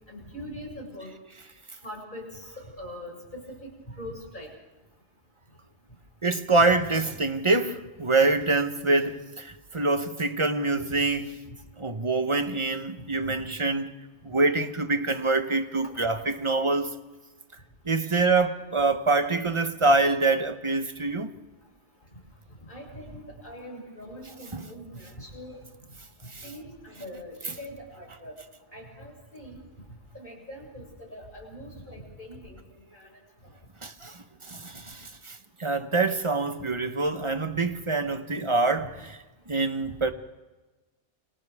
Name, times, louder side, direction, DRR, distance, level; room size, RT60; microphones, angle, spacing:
voice 1, 0.1-1.1 1.8-4.5 10.8-10.9 13.2-13.3 15.8-15.9 19.8-19.9 22.6-25.6 26.4-28.3 28.7-29.6 30.1-32.6 32.9-33.1 38.8-38.9, equal, 40° left, 7.1 m, -42 dB
voice 2, 6.2-11.4 11.8-13.9 14.2-16.9 17.8-21.3 24.5-24.6 26.3-26.4 33.8-39.2 39.5-40.1, right 3 dB, 25° right, 1.1 m, -25 dB
29.5 x 25.0 x 3.6 m
omnidirectional pair, 1.3 m